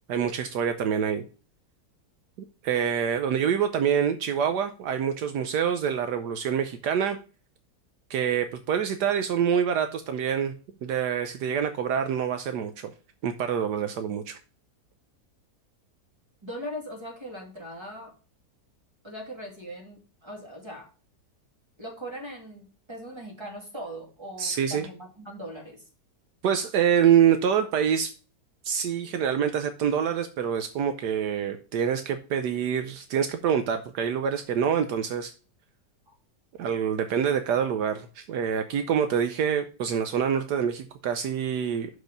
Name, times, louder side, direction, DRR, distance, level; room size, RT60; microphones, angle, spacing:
voice 1, 0.1-1.2 2.6-7.2 8.1-10.5 10.8-12.9 13.2-14.4 24.4-24.9 26.4-28.1 28.6-35.3 36.6-41.9, right 8 dB, 75° right, 8 dB, 1.2 m, -26 dB
voice 2, 16.4-18.1 19.0-20.9 21.8-25.9 36.1-36.2, equal, 15° right, 0 dB, 2.6 m, -40 dB
6.3 x 4.9 x 6.5 m, 0.37 s
omnidirectional pair, 1.8 m